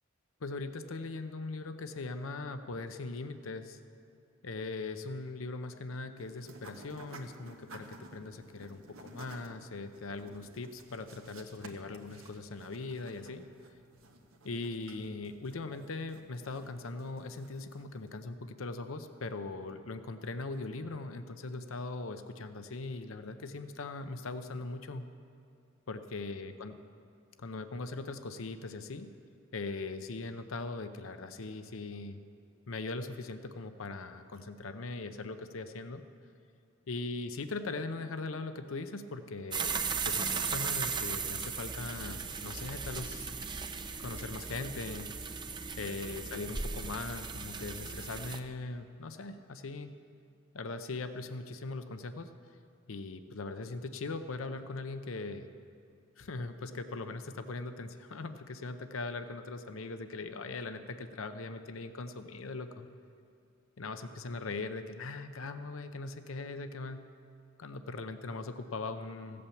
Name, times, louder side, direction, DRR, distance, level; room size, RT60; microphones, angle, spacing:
voice 1, 0.4-3.8 4.4-13.4 14.4-25.1 25.9-26.8 27.4-29.1 29.5-32.2 32.7-36.0 36.9-43.3 44.0-45.1 45.8-50.0 50.5-52.3 52.9-55.5 56.2-62.9 63.8-67.1 67.6-69.4, left 3 dB, 75° left, 9 dB, 0.7 m, -40 dB
sound 1, 6.2-18.1, right 2 dB, 85° right, 1.3 m, -54 dB
sound 2, 39.5-48.4, right 5 dB, 20° right, 0.6 m, -37 dB
15.5 x 8.6 x 7.1 m, 2.6 s
head